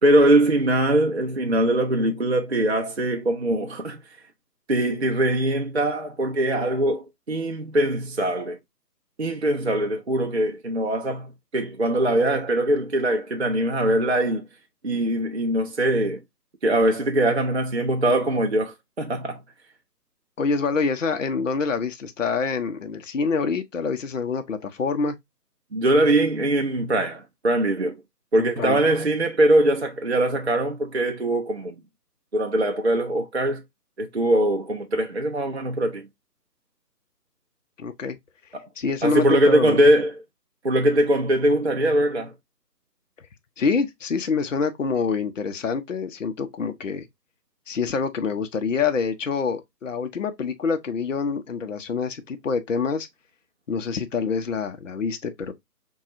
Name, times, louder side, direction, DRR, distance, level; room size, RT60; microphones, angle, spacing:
voice 1, 0.0-4.0 4.7-8.6 9.2-14.4 14.8-16.2 16.6-19.4 25.7-28.0 28.3-31.8 32.3-33.6 34.0-36.1 39.0-40.1 40.6-42.3, right 1 dB, 45° right, 0.4 m, -22 dB
voice 2, 20.4-25.2 28.4-28.8 37.8-38.2 38.8-39.8 43.6-47.0 47.7-53.1 53.7-55.5, left 5 dB, 50° left, 0.6 m, -26 dB
5.7 x 2.3 x 2.5 m
figure-of-eight pair, 145°, 49 cm